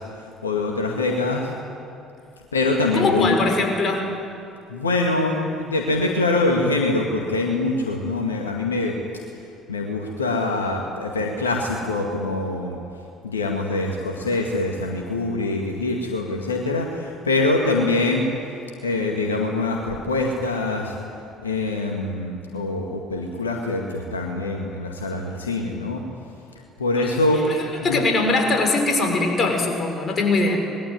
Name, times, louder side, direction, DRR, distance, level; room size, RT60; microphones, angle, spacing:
voice 1, 0.0-1.5 2.5-3.5 4.7-8.9 9.7-12.8 13.2-18.3 18.8-20.9 21.4-26.0 26.8-27.4 27.8-28.0, left 2 dB, 80° left, 1 dB, 1.9 m, -24 dB
voice 2, 2.9-4.0 27.0-27.1 27.5-27.6 27.8-30.6, left 3 dB, 35° left, 3 dB, 6.3 m, -21 dB
25.0 x 21.0 x 9.5 m, 2.6 s
figure-of-eight pair, 55°, 0 cm